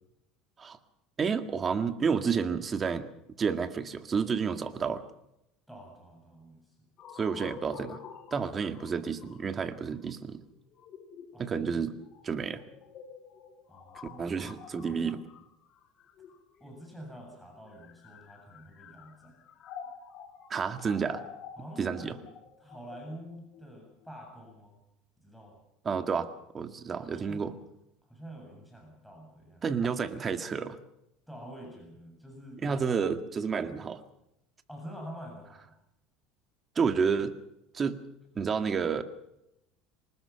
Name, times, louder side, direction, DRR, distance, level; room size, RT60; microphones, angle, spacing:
voice 1, 1.2-3.1 3.4-5.0 7.1-8.0 8.3-10.4 11.4-12.0 12.2-12.6 14.2-15.3 20.5-21.2 21.8-22.2 25.8-26.3 26.5-27.5 29.6-30.8 32.6-34.0 36.8-37.4 37.7-38.0 38.4-39.0, right 6 dB, 25° right, 8 dB, 1.9 m, -30 dB
voice 2, 5.7-6.7 11.3-11.6 13.7-14.3 16.6-19.4 21.6-22.3 22.6-24.8 25.2-25.6 26.9-27.5 28.1-29.7 31.3-32.8 34.7-35.8, equal, ahead, 0 dB, 7.7 m, -47 dB
sound 1, 7.0-16.8 17.6-24.5, left 7 dB, 45° left, 3.3 m, -49 dB
24.5 x 20.0 x 5.9 m, 0.85 s
supercardioid pair, 125°, 0 cm